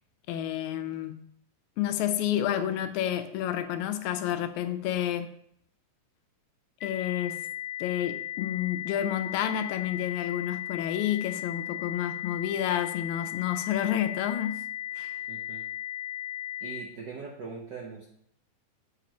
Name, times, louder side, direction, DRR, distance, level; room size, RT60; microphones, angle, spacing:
voice 1, 0.3-1.2 1.8-5.3 6.8-7.4 7.8-14.6 15.0-15.2, left 11 dB, 90° left, 9 dB, 2.0 m, -30 dB
sound 1, 6.8-16.8, left 13 dB, 70° left, 0.8 m, -36 dB
voice 2, 15.3-15.7 16.6-18.1, right 5 dB, 70° right, -2 dB, 1.0 m, -41 dB
7.8 x 5.0 x 4.4 m, 0.69 s
omnidirectional pair, 3.3 m